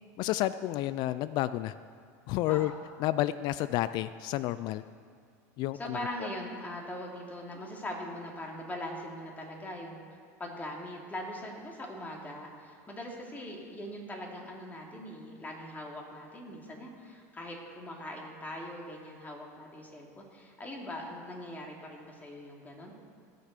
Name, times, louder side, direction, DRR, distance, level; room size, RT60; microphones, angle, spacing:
voice 1, 0.2-1.7 2.3-2.7 3.0-4.8 5.6-6.3, left 15 dB, 55° left, 14 dB, 0.4 m, -30 dB
voice 2, 2.5-2.8 5.7-10.0 10.4-22.9, left 1 dB, 20° left, 0 dB, 2.7 m, -41 dB
16.5 x 6.7 x 6.6 m, 2.2 s
supercardioid pair, 100°, 9 cm